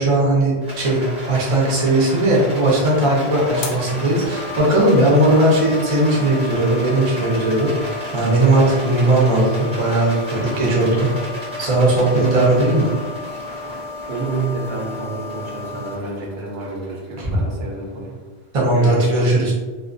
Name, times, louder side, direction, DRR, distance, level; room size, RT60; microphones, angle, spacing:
voice 1, 0.0-7.7 8.1-11.1 11.6-12.9 17.2-17.4 18.5-19.5, right 1 dB, 40° right, -4 dB, 0.6 m, -17 dB
Rattle, 0.6-18.0, equal, 5° right, 0.8 m, -34 dB
sound 1, 2.4-15.9, left 3 dB, 70° left, 0.8 m, -34 dB
voice 2, 14.1-18.2 18.7-19.2, right 3 dB, 70° right, -3 dB, 0.8 m, -29 dB
2.3 x 2.1 x 2.5 m, 1.4 s
omnidirectional pair, 1.1 m